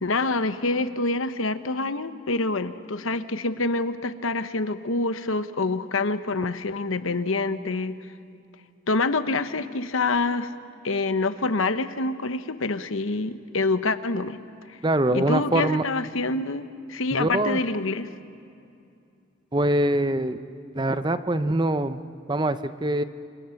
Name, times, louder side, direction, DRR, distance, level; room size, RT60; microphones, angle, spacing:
voice 1, 0.0-8.0 8.9-10.5 10.8-14.4 14.7-14.8 15.1-18.1, left 3 dB, 80° left, 11 dB, 1.0 m, -26 dB
voice 2, 14.8-15.8 17.1-17.6 19.5-20.4 20.7-22.0 22.3-23.0, right 1 dB, 20° right, 11 dB, 0.6 m, -23 dB
29.0 x 26.5 x 5.9 m, 2.5 s
head